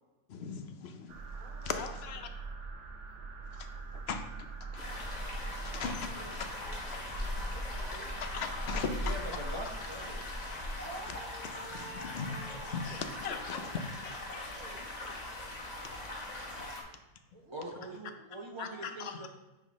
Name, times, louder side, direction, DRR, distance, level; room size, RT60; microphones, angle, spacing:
voice 1, 0.3-1.2 1.6-2.3 3.6-3.7 4.1-4.5 4.7-4.8 5.6-6.1 6.9-7.0 8.2-9.2 11.7-13.6 14.0-14.4 15.0-15.1 18.6-19.3, left 5 dB, 60° left, 7 dB, 0.9 m, -39 dB
sound 1, 1.1-10.1, right 4 dB, 70° right, 1.0 m, -45 dB
voice 2, 1.3-2.1 7.5-8.2 10.8-14.1 14.4-14.8 15.7-17.0 17.3-19.0, right 2 dB, 90° right, -2 dB, 2.1 m, -51 dB
sound 2, 4.8-16.8, left 1 dB, 35° left, 1.2 m, -39 dB
voice 3, 5.5-6.3 9.0-10.3 17.5-19.3, right 2 dB, 25° right, 0 dB, 1.0 m, -44 dB
9.5 x 4.4 x 3.1 m, 1.1 s
omnidirectional pair, 1.3 m